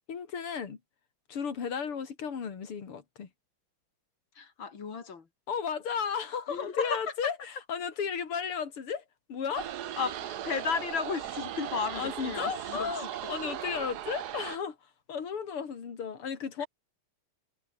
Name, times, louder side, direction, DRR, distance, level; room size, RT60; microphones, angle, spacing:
voice 1, 0.1-0.8 1.3-3.3 5.5-9.0 9.3-9.7 12.0-16.7, left 6 dB, 80° left, 3.5 m, -34 dB
voice 2, 4.3-5.3 6.5-7.3 10.0-13.1 16.6-16.7, left 5 dB, 60° left, 3.4 m, -34 dB
sound 1, 9.6-14.6, right 11 dB, 60° right, 1.2 m, -38 dB
omnidirectional pair, 2.4 m